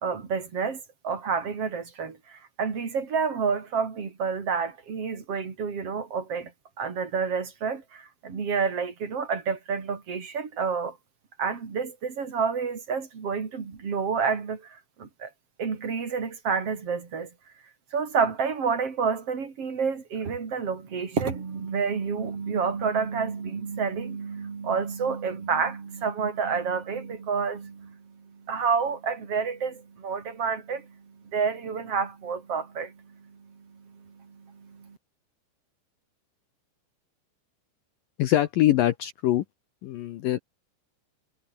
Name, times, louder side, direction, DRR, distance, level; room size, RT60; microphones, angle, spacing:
voice 1, 0.0-6.5 6.8-10.9 11.4-14.6 15.0-15.3 15.6-17.3 17.9-30.9 31.3-35.0, right 5 dB, 35° right, 3.8 m, -29 dB
voice 2, 38.2-39.4 39.8-40.4, left 13 dB, 75° left, 2.1 m, -23 dB
omnidirectional pair, 5.1 m